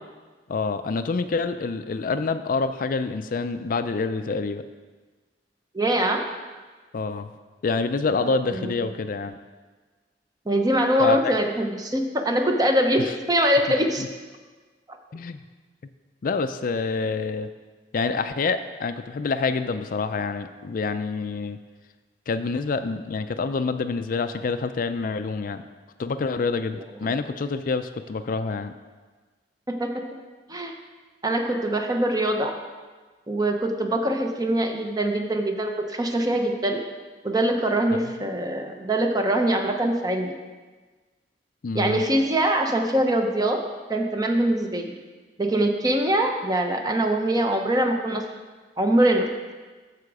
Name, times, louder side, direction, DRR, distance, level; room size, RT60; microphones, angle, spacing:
voice 1, 0.5-4.7 6.9-7.3 7.6-9.3 11.0-11.2 13.0-13.1 14.0-14.1 15.1-15.4 16.2-17.5 17.9-21.6 22.3-25.6 26.0-28.7 38.0-38.1 41.6-42.0, left 4 dB, 50° left, 10 dB, 0.4 m, -27 dB
voice 2, 5.7-6.3 8.5-8.9 10.5-14.0 29.7-29.9 30.5-30.7 31.2-32.5 33.3-36.8 37.2-40.3 41.7-43.6 43.9-44.9 45.4-48.2 48.8-49.3, right 1 dB, 20° right, 4 dB, 0.8 m, -23 dB
13.5 x 5.0 x 4.8 m, 1.4 s
head